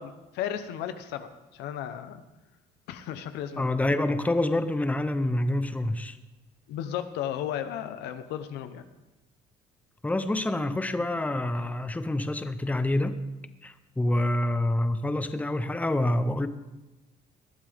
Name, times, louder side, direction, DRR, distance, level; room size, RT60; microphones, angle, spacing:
voice 1, 0.0-2.2 2.9-3.7 6.7-8.8, left 10 dB, 90° left, 10 dB, 1.0 m, -34 dB
voice 2, 3.6-6.2 10.0-13.2 13.6-16.5, left 1 dB, 10° left, 11 dB, 0.8 m, -27 dB
20.0 x 12.5 x 3.6 m, 1.1 s
cardioid pair, 110°, 17 cm